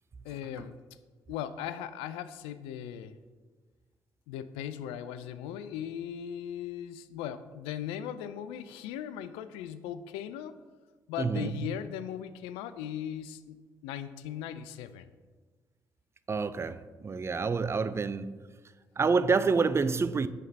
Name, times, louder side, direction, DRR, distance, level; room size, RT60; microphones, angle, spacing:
voice 1, 0.2-0.8 1.3-3.2 4.3-10.6 11.1-13.6 13.8-15.1, left 10 dB, 75° left, 0.4 m, -38 dB
voice 2, 11.2-11.7 16.3-18.5 19.0-20.3, right 4 dB, 25° right, 0.4 m, -28 dB
5.6 x 4.7 x 5.5 m
hypercardioid pair, 45°, 10 cm